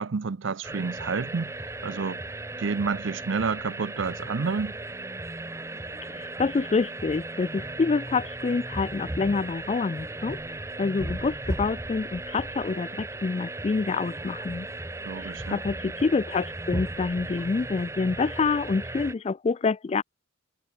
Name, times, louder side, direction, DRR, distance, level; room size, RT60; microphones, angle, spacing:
voice 1, 0.0-1.5 1.8-2.2 2.6-4.7 15.0-15.6, right 5 dB, 65° right, 0.6 m, -29 dB
sound 1, 0.6-19.1, right 2 dB, 15° right, 0.7 m, -36 dB
voice 2, 6.1-14.7 15.2-20.0, left 4 dB, 30° left, 0.3 m, -27 dB
head